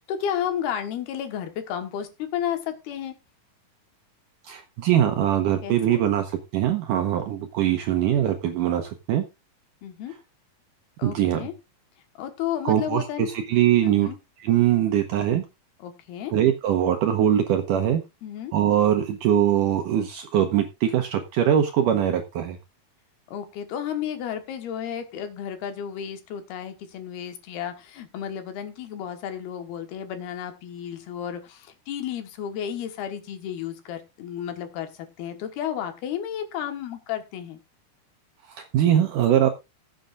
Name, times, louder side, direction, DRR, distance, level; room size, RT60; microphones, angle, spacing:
voice 1, 0.1-3.1 5.6-6.0 9.8-10.1 11.0-11.5 12.2-13.3 13.8-14.2 15.8-16.3 18.2-18.5 23.3-37.6, left 9 dB, 75° left, 7 dB, 3.1 m, -32 dB
voice 2, 4.4-9.2 11.0-11.4 12.7-14.1 14.4-15.5 16.3-18.0 18.5-22.6 38.5-39.5, right 10 dB, 75° right, 5 dB, 1.9 m, -22 dB
19.5 x 7.8 x 2.5 m, 0.24 s
omnidirectional pair, 4.7 m